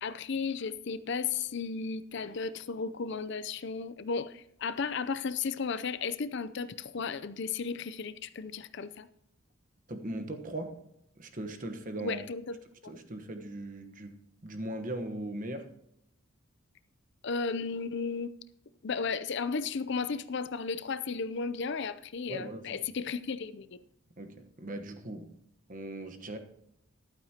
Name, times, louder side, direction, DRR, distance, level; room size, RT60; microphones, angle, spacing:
voice 1, 0.0-9.1 12.0-12.6 12.8-12.9 17.2-18.3 18.8-23.8, left 5 dB, 60° left, 0.5 m, -34 dB
voice 2, 9.9-10.8 11.2-12.2 12.8-15.7 22.3-22.8 24.2-25.3 25.7-26.4, right 1 dB, 40° right, 1.1 m, -39 dB
14.0 x 11.5 x 2.9 m
head